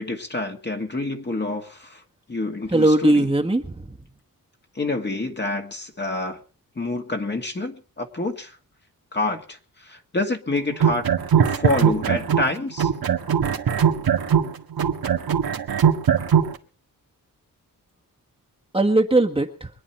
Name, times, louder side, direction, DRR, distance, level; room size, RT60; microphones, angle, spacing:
voice 1, 0.0-2.0 2.3-3.3 4.8-6.4 6.8-8.6 9.1-11.1 11.3-12.9, left 2 dB, 30° left, 4 dB, 2.2 m, -27 dB
voice 2, 2.7-3.9 18.7-19.7, right 2 dB, 15° right, 1 dB, 1.6 m, -19 dB
sound 1, 10.7-12.5 12.8-16.5, right 8 dB, 80° right, 1.8 m, -20 dB
24.5 x 9.9 x 4.5 m, 0.38 s
wide cardioid pair, 125°, 35 cm